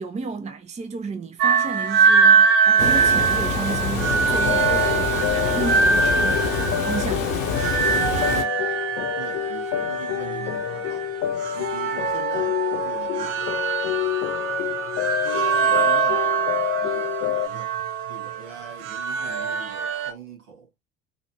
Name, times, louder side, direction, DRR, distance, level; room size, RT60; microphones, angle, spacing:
voice 1, 0.0-7.4, right 4 dB, 20° right, 0.7 m, -32 dB
sound 1, 1.4-20.1, right 6 dB, 55° right, 0.8 m, -23 dB
Water, 2.8-8.4, left 5 dB, 85° left, 1.1 m, -27 dB
sound 2, 4.3-17.5, left 13 dB, 35° left, 0.4 m, -28 dB
voice 2, 8.3-8.7 9.2-11.2 11.5-13.8 14.9-17.8 18.1-20.7, right 6 dB, 75° right, 2.2 m, -43 dB
3.9 x 3.0 x 2.8 m
figure-of-eight pair, 65°, 38 cm